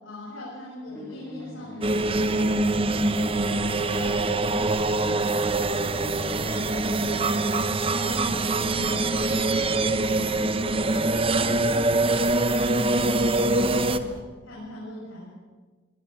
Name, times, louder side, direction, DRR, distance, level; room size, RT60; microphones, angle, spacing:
voice 1, 0.0-4.1 4.5-10.9 11.3-14.1 14.4-15.3, left 1 dB, 65° left, -6 dB, 7.9 m, -41 dB
sound 1, 0.9-11.8, left 1 dB, 10° left, 7.8 m, -43 dB
sound 2, 1.8-14.0, right 2 dB, 25° right, 0.9 m, -24 dB
sound 3, 5.4-14.2, right 1 dB, 55° right, 1.4 m, -44 dB
22.5 x 19.0 x 7.9 m, 1.3 s
head